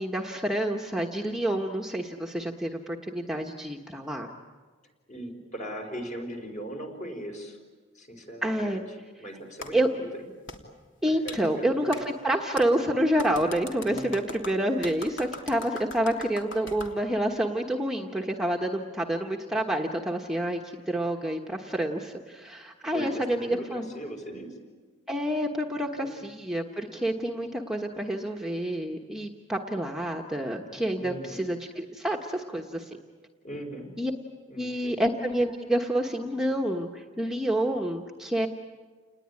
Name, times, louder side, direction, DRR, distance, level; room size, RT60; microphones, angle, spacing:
voice 1, 0.0-4.3 8.4-8.8 9.7-9.9 11.0-23.9 25.1-32.9 34.0-34.1 34.5-38.5, right 1 dB, 5° right, 1 dB, 1.2 m, -28 dB
voice 2, 5.1-7.6 7.9-8.8 9.2-10.3 11.0-12.0 13.8-14.2 22.9-24.6 26.0-26.2 30.9-31.5 33.4-33.9 34.5-35.0, equal, 40° left, 3 dB, 4.7 m, -39 dB
Clapping, 9.6-9.7 10.5-10.6 11.3-11.4 11.9-12.0 12.6-12.7 13.2-16.9, left 3 dB, 70° left, 3.1 m, -40 dB
29.5 x 20.0 x 9.8 m, 1.5 s
head